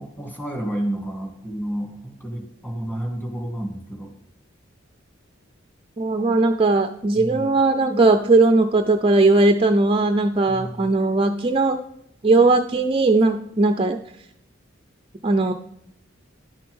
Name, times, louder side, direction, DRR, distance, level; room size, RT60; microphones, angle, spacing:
voice 1, 0.0-4.1 7.1-7.6 10.5-10.9, right 1 dB, 10° left, 1 dB, 2.5 m, -30 dB
voice 2, 6.0-11.8 12.2-14.0 15.2-15.5, right 3 dB, 30° right, 7 dB, 0.5 m, -18 dB
11.5 x 6.8 x 3.7 m, 0.75 s
head